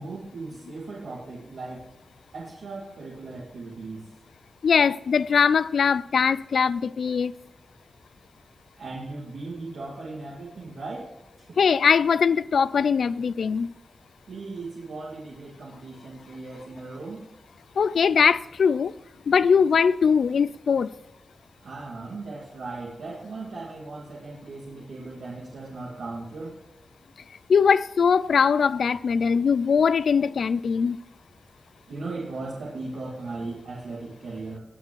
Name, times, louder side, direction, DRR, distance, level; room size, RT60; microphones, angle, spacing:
voice 1, 0.0-1.8 2.3-4.1 8.8-11.5 14.3-17.3 21.6-26.6 31.9-34.6, right 3 dB, 80° right, 2.2 m, -37 dB
voice 2, 4.6-7.3 11.6-13.7 17.8-18.9 19.3-20.9 27.5-31.0, left 6 dB, 70° left, 0.4 m, -21 dB
19.0 x 7.5 x 3.1 m
wide cardioid pair, 140°, 0 cm